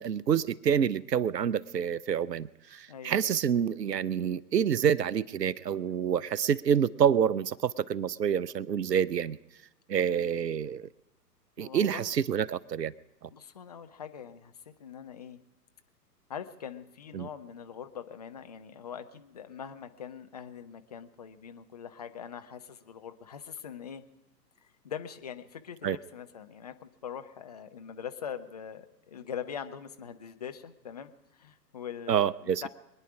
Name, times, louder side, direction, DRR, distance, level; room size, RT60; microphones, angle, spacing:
voice 1, 0.0-9.4 9.9-10.9 11.6-12.9 13.2-13.3 17.1-17.3 25.8-26.0 32.1-32.7, right 8 dB, 75° right, 21 dB, 0.7 m, -27 dB
voice 2, 11.6-12.1 13.3-14.5 14.8-15.4 16.3-24.0 24.6-32.7, left 8 dB, 25° left, 8 dB, 0.5 m, -42 dB
24.0 x 9.9 x 4.8 m, 0.94 s
figure-of-eight pair, 120°, 49 cm